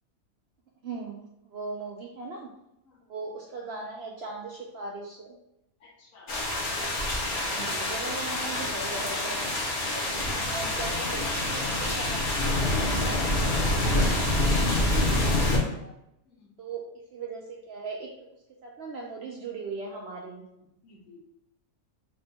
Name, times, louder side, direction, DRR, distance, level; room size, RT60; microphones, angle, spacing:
voice 1, 0.8-2.5 3.1-5.4 7.5-10.0 10.4-15.9 16.6-16.8 17.1-18.1 18.6-20.4, right 3 dB, 65° right, -1 dB, 0.6 m, -39 dB
voice 2, 5.8-6.4 16.3-16.5 20.8-21.2, left 3 dB, 70° left, -2 dB, 1.2 m, -54 dB
sound 1, 6.3-15.6, left 1 dB, 45° left, 0.7 m, -26 dB
3.5 x 2.2 x 3.9 m, 0.83 s
omnidirectional pair, 1.5 m